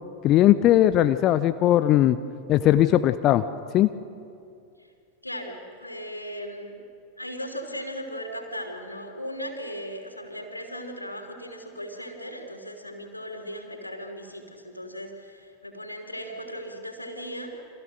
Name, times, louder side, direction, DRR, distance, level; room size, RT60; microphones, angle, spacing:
voice 1, 0.2-2.2 2.5-3.4 3.7-3.9, left 13 dB, 35° left, 11 dB, 0.7 m, -19 dB
voice 2, 5.2-6.8 7.2-17.6, equal, 85° left, 4 dB, 3.4 m, -37 dB
30.0 x 26.5 x 6.4 m, 2.5 s
figure-of-eight pair, 90°, 0 cm